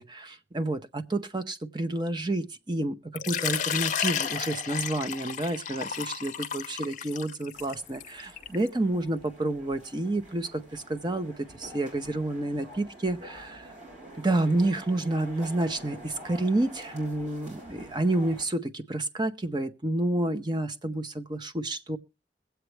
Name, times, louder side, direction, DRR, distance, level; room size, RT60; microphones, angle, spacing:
voice 1, 0.0-13.7 14.2-22.0, right 2 dB, 25° right, 0.7 m, -29 dB
Water / Liquid, 3.2-8.7, left 8 dB, 45° left, 0.6 m, -32 dB
sound 1, 7.5-18.4, equal, 40° right, 5.1 m, -48 dB
22.0 x 8.0 x 3.2 m
head